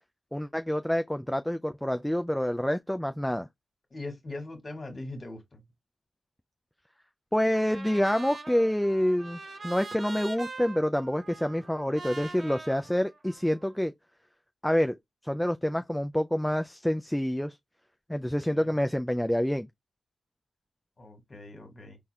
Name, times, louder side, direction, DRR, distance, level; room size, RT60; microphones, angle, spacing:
voice 1, 0.3-3.5 7.3-13.9 14.6-15.0 15.2-17.6 18.1-19.7, equal, 5° left, 0.3 m, -27 dB
voice 2, 3.9-5.6 18.5-18.7 21.0-22.0, left 2 dB, 40° left, 1.6 m, -41 dB
Trumpet, 7.5-13.7, right 3 dB, 45° right, 1.0 m, -43 dB
4.1 x 2.3 x 3.3 m
cardioid pair, 65°, 0 cm